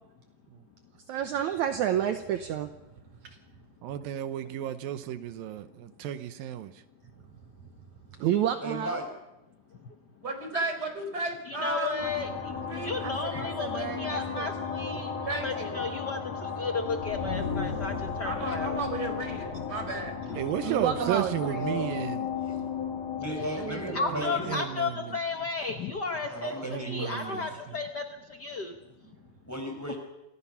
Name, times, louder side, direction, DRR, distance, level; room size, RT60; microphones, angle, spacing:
voice 1, 1.1-2.7 3.2-3.4 8.2-9.0 13.0-14.5 20.6-21.6 23.6-24.3, right 10 dB, 70° right, 8 dB, 2.1 m, -30 dB
voice 2, 3.8-6.7 20.4-22.3 24.1-25.2 26.6-27.8, right 11 dB, 85° right, 11 dB, 2.8 m, -33 dB
voice 3, 8.6-9.1 20.5-22.0 22.5-22.6 23.2-24.6 26.3-27.4 29.5-30.0, equal, 5° left, 3 dB, 5.1 m, -36 dB
voice 4, 10.2-12.0 12.7-12.9 15.2-15.8 18.2-20.1, right 2 dB, 25° right, 5 dB, 5.0 m, -34 dB
voice 5, 11.5-15.1 15.4-18.8 23.9-28.8, left 4 dB, 85° left, 4 dB, 0.9 m, -34 dB
sound 1, 12.0-26.1, left 6 dB, 65° left, 3.9 m, -35 dB
27.5 x 21.0 x 5.7 m, 0.95 s
omnidirectional pair, 4.0 m